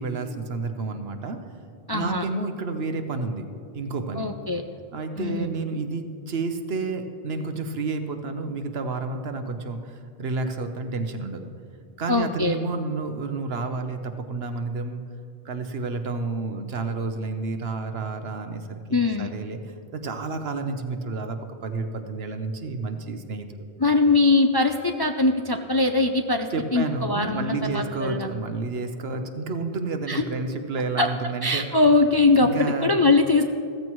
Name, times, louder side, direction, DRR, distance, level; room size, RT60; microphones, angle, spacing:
voice 1, 0.0-1.4 1.9-3.5 3.7-4.3 4.9-11.5 12.0-15.0 15.4-19.6 19.9-23.6 26.5-31.6 32.4-32.9, right 3 dB, 70° right, 7 dB, 1.1 m, -30 dB
voice 2, 1.9-2.3 4.2-4.6 5.2-5.5 12.1-12.6 18.9-19.3 23.8-28.3 30.1-30.2 31.0-31.1 31.4-32.5 32.8-33.4, left 3 dB, 35° left, 5 dB, 0.4 m, -21 dB
15.5 x 14.5 x 3.1 m, 2.4 s
omnidirectional pair, 1.1 m